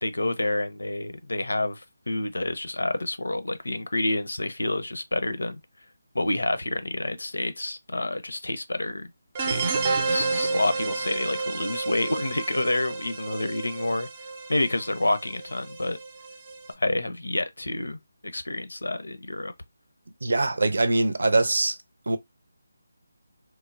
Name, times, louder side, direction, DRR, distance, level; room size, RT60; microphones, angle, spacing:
voice 1, 0.0-5.6 6.1-9.1 9.4-9.7 10.1-14.1 14.5-16.0 16.8-18.0 18.3-19.5, left 2 dB, 85° left, 0.6 m, -28 dB
sound 1, 9.3-16.7, right 4 dB, 30° right, 0.5 m, -30 dB
voice 2, 20.2-21.8 22.1-22.2, right 2 dB, 70° right, 0.6 m, -22 dB
3.1 x 2.0 x 2.5 m
figure-of-eight pair, 160°, 0 cm